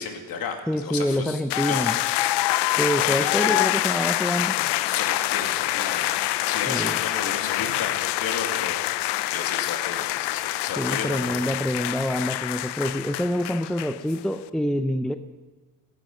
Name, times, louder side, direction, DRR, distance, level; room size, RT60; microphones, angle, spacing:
voice 1, 0.0-1.4 1.7-2.3 3.0-3.7 4.8-6.1 6.4-8.8 9.3-12.0, left 5 dB, 55° left, 4 dB, 2.4 m, -34 dB
voice 2, 0.7-2.0 2.8-4.6 6.7-7.0 10.8-15.2, equal, ahead, 10 dB, 0.5 m, -26 dB
sound 1, 1.5-14.2, left 16 dB, 70° left, 0.6 m, -26 dB
15.0 x 12.5 x 5.4 m, 1.3 s
cardioid pair, 95°, 42 cm